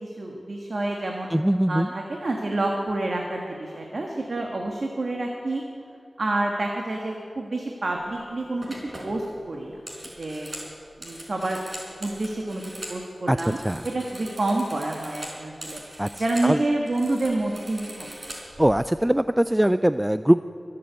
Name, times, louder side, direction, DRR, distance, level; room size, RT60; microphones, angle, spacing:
voice 1, 0.0-1.3 1.7-5.6 6.2-8.7 9.0-9.8 10.2-10.5 11.0-11.6 12.0-12.6 12.9-13.6 13.8-15.8 16.2-18.1, right 2 dB, 60° right, 1 dB, 1.5 m, -28 dB
voice 2, 1.3-1.9 13.3-13.9 16.0-16.6 18.6-20.4, right 1 dB, 10° right, 12 dB, 0.3 m, -22 dB
sound 1, 8.0-8.2 8.6-13.0 13.3-16.5 16.8-18.7, right 1 dB, 45° right, 4.4 m, -41 dB
23.0 x 7.6 x 8.1 m, 2.6 s
wide cardioid pair, 60°, 0 cm